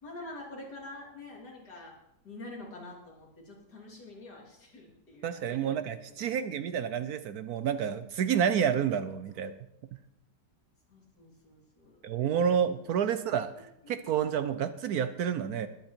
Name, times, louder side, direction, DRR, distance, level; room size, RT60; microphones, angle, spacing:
voice 1, 0.0-1.9 2.2-6.4 9.3-9.4 10.9-12.5 12.8-13.0 13.5-14.0, left 2 dB, 65° left, -2 dB, 3.6 m, -47 dB
voice 2, 5.2-9.5 12.0-13.5 13.9-15.7, right 8 dB, 70° right, 12 dB, 1.1 m, -29 dB
20.5 x 8.2 x 4.4 m, 0.81 s
omnidirectional pair, 1.9 m